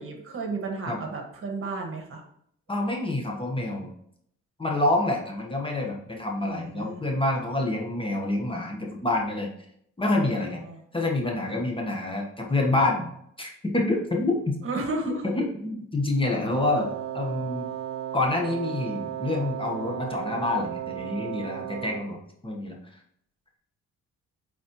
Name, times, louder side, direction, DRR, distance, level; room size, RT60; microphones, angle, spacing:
voice 1, 0.0-2.2 6.4-7.0 10.1-10.4 10.6-10.8 14.6-15.2, right 3 dB, 45° right, 2 dB, 1.7 m, -33 dB
voice 2, 2.7-3.9 4.6-9.5 10.0-10.6 10.9-13.1 13.4-14.6 15.0-16.9 17.1-17.7 18.1-22.8, left 2 dB, 15° left, 0 dB, 1.2 m, -27 dB
Wind instrument woodwind instrument, 16.5-22.2, right 11 dB, 65° right, 0.5 m, -34 dB
8.3 x 4.1 x 3.0 m, 0.70 s
cardioid pair, 90°, 30 cm